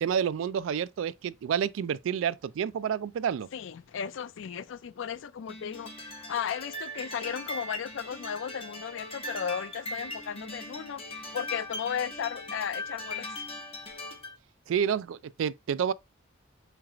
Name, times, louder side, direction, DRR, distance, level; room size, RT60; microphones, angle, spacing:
voice 1, 0.0-3.5 14.7-15.9, right 8 dB, 80° right, 0.3 m, -29 dB
voice 2, 3.5-11.0 11.3-13.4, left 8 dB, 70° left, 0.4 m, -35 dB
sound 1, 5.5-14.4, left 1 dB, 30° left, 1.4 m, -40 dB
4.9 x 4.5 x 2.3 m
head